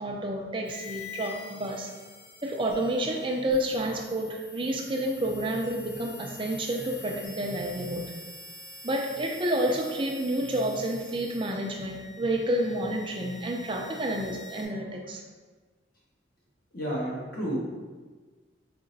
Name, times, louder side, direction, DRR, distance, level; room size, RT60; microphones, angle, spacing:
voice 1, 0.0-1.9 2.4-8.1 8.8-15.2, right 1 dB, 25° right, 1 dB, 0.4 m, -29 dB
sound 1, 0.6-14.6, left 3 dB, 70° left, 1.3 m, -46 dB
voice 2, 16.7-17.6, equal, 50° left, -6 dB, 1.2 m, -31 dB
4.2 x 3.8 x 2.6 m, 1.4 s
head